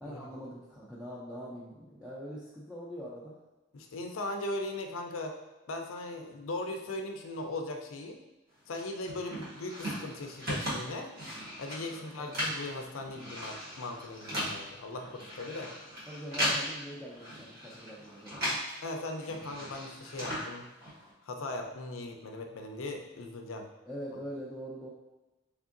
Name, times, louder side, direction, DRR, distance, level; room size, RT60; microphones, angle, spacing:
voice 1, 0.0-3.4 11.9-12.4 16.1-18.6 23.9-24.9, equal, ahead, -9 dB, 0.5 m, -43 dB
voice 2, 3.7-5.3 5.7-8.2 8.7-11.1 11.6-15.7 18.8-20.7 21.2-23.7, left 2 dB, 80° left, 4 dB, 0.5 m, -38 dB
sound 1, 8.7-18.8 19.0-21.1, equal, 50° right, 1.3 m, -37 dB
3.6 x 3.4 x 2.5 m, 1.1 s
head